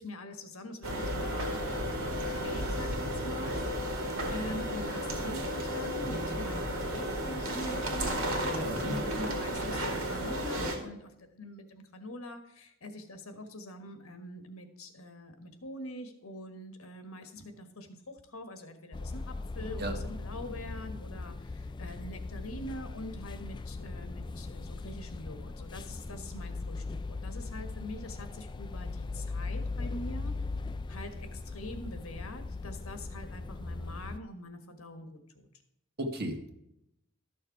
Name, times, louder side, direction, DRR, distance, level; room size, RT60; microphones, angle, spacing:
voice 1, 0.0-1.5 1.9-30.3 30.9-35.5, left 1 dB, 80° left, 7 dB, 1.5 m, -44 dB
sound 1, 0.8-10.8, equal, 70° right, 2.3 m, -33 dB
voice 2, 8.5-9.0 19.8-19.9 36.0-36.5, right 1 dB, 50° right, 4 dB, 1.6 m, -35 dB
sound 2, 18.9-34.2, left 3 dB, 20° left, 0.3 m, -39 dB
13.0 x 6.7 x 4.7 m, 0.80 s
head